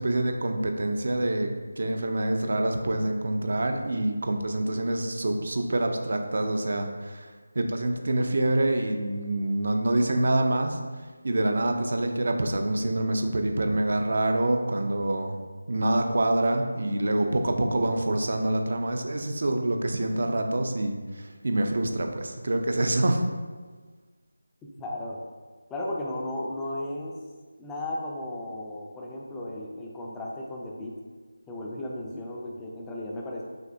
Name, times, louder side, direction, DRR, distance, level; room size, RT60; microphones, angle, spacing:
voice 1, 0.0-1.5 1.8-10.8 11.2-15.4 15.7-23.2, right 1 dB, 55° right, 5 dB, 0.4 m, -26 dB
voice 2, 24.6-25.2 25.7-27.2 27.6-31.0 31.5-33.4, left 1 dB, 5° left, -3 dB, 0.4 m, -35 dB
5.8 x 2.6 x 2.6 m, 1.4 s
figure-of-eight pair, 165°, 0 cm